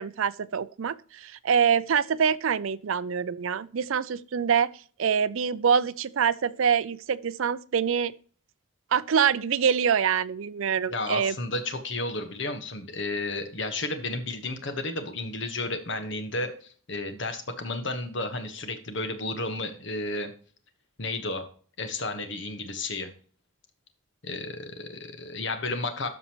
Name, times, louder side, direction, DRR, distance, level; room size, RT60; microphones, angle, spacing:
voice 1, 0.0-4.7 5.0-8.1 8.9-11.3, right 7 dB, 70° right, 0.5 m, -25 dB
voice 2, 10.9-20.3 21.0-21.4 21.8-23.1 24.2-26.1, left 2 dB, 55° left, 1.3 m, -32 dB
13.0 x 5.4 x 3.0 m
head